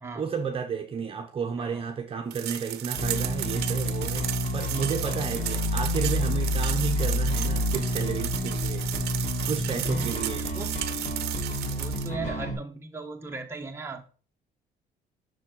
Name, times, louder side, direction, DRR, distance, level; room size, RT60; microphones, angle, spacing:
voice 1, 0.1-8.8 9.5-10.5, right 6 dB, 35° right, 0.9 m, -32 dB
sound 1, 2.3-12.1, right 14 dB, 75° right, 0.6 m, -34 dB
Bass guitar, 2.9-12.5, left 1 dB, 40° left, 3.0 m, -29 dB
voice 2, 9.8-10.8 11.7-14.1, right 3 dB, 15° right, 1.2 m, -38 dB
6.4 x 4.3 x 4.5 m
cardioid pair, 110°, 17 cm